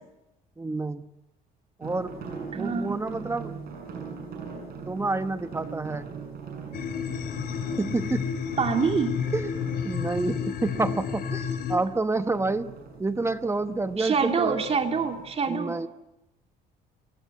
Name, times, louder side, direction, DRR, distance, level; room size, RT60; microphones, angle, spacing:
voice 1, 0.6-1.0 1.8-2.1 2.5-3.5 4.9-6.1 7.8-8.3 9.3-9.5 9.8-12.7 13.0-14.6 15.5-15.9, right 3 dB, 15° right, 10 dB, 1.1 m, -28 dB
sound 1, 1.8-15.3, right 5 dB, 65° right, 7.4 m, -42 dB
voice 2, 2.5-3.0 8.6-9.1 14.0-15.8, right 5 dB, 35° right, 4 dB, 2.6 m, -26 dB
sound 2, 6.7-11.8, left 7 dB, 65° left, 3.6 m, -31 dB
29.0 x 17.5 x 8.3 m, 0.96 s
cardioid pair, 110°, 17 cm